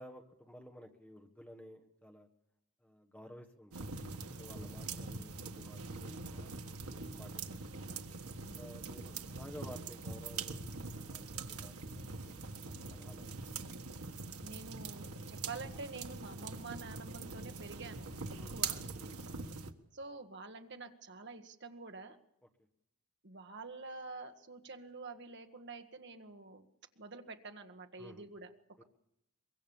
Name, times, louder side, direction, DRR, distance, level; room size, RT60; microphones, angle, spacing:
voice 1, 0.0-2.3 2.8-3.9 4.4-6.6 6.8-7.6 8.6-12.1 12.4-13.3 18.4-18.6 19.0-19.1 28.0-28.3 28.8-28.9, equal, 5° left, 3 dB, 1.5 m, -54 dB
sound 1, 3.7-19.7, right 4 dB, 85° right, 1.5 m, -43 dB
voice 2, 8.4-8.9 14.4-18.8 19.9-22.2 23.2-26.7 27.0-28.5, right 3 dB, 50° right, 5 dB, 1.6 m, -48 dB
24.0 x 22.0 x 7.2 m, 0.82 s
head